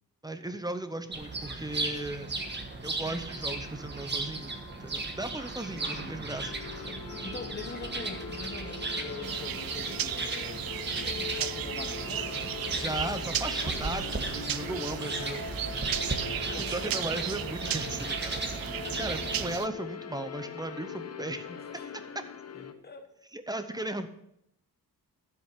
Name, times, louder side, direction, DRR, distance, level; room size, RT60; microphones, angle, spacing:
voice 1, 0.2-2.3 2.8-6.6 6.8-7.0 12.7-15.4 16.5-18.4 18.7-21.4 23.3-24.1, right 1 dB, 10° right, 9 dB, 0.8 m, -36 dB
sound 1, 1.1-19.6, right 3 dB, 30° right, 1.5 m, -36 dB
voice 2, 5.7-6.3 7.0-12.4 15.9-17.1 21.5-21.9 22.5-23.1, left 4 dB, 25° left, 5 dB, 1.4 m, -45 dB
sound 2, 6.4-22.7, left 7 dB, 40° left, 0.9 m, -42 dB
sound 3, 9.2-19.7, right 11 dB, 65° right, 0.5 m, -36 dB
13.0 x 7.7 x 5.7 m, 0.77 s
wide cardioid pair, 175°, 38 cm